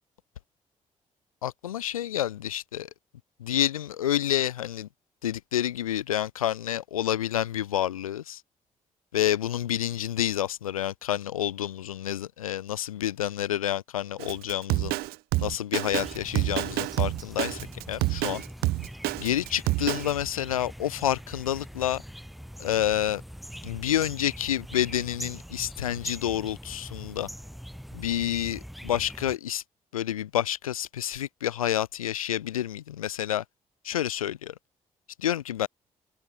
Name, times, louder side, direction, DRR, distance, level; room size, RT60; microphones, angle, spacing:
voice 1, 1.4-2.9 3.4-4.9 5.2-8.4 9.1-15.0 15.4-17.6 17.9-18.4 19.2-22.0 22.6-23.2 23.6-27.3 27.9-29.6 29.9-33.4 33.8-34.5 35.2-35.7, left 11 dB, 90° left, 0.8 m, -29 dB
Drum kit, 14.2-20.1, right 19 dB, 65° right, 0.4 m, -28 dB
sound 1, 15.9-29.4, equal, ahead, 6.4 m, -42 dB
figure-of-eight pair, 40°, 17 cm